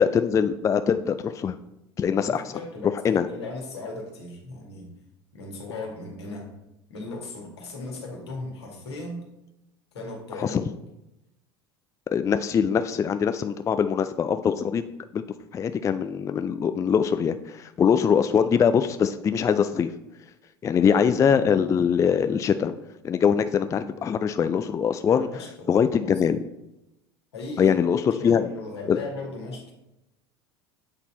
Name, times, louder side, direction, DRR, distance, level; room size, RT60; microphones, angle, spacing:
voice 1, 0.0-1.6 2.0-2.5 3.0-3.3 10.4-10.6 12.1-14.8 15.1-15.2 15.5-19.9 20.6-22.7 23.0-25.3 25.7-26.4 27.6-28.5 28.9-29.0, left 7 dB, 25° left, 10 dB, 0.3 m, -22 dB
voice 2, 2.2-4.9 5.3-6.5 6.9-9.2 9.9-10.6 25.1-26.1 27.3-29.6, left 2 dB, 80° left, 0 dB, 1.7 m, -37 dB
8.0 x 4.1 x 4.2 m, 0.91 s
figure-of-eight pair, 70°, 14 cm